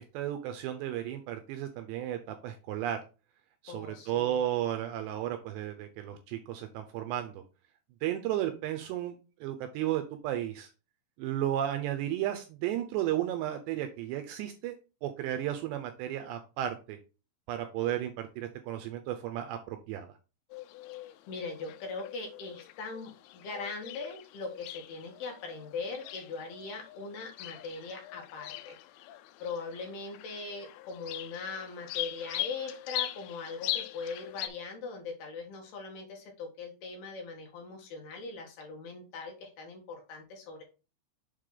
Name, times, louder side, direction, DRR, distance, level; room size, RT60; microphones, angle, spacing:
voice 1, 0.0-3.0 3.6-7.3 8.0-9.1 9.4-10.7 11.2-14.7 15.0-17.0 17.5-20.1, right 12 dB, 80° right, 6 dB, 2.6 m, -33 dB
voice 2, 3.7-4.4 21.0-29.1 29.4-40.6, left 4 dB, 65° left, 1 dB, 2.8 m, -41 dB
sound 1, 20.5-34.5, left 15 dB, 85° left, 2.5 m, -41 dB
7.4 x 4.9 x 3.8 m, 0.32 s
omnidirectional pair, 5.5 m